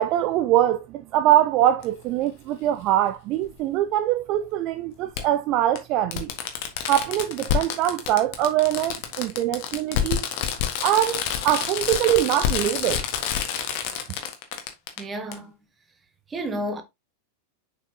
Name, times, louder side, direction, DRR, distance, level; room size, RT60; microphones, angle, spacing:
voice 1, 0.0-6.3 6.9-10.2 10.8-13.1, right 12 dB, 40° right, 0.4 m, -23 dB
Fireworks, 1.8-1.9 3.5-3.6 5.2-5.3 5.8-5.9 6.1-15.0 15.3-15.4, left 9 dB, 45° left, 1.5 m, -28 dB
voice 2, 15.0-15.5 16.3-16.8, right 1 dB, 20° right, 1.5 m, -30 dB
6.9 x 5.7 x 2.8 m
figure-of-eight pair, 90°, 0 cm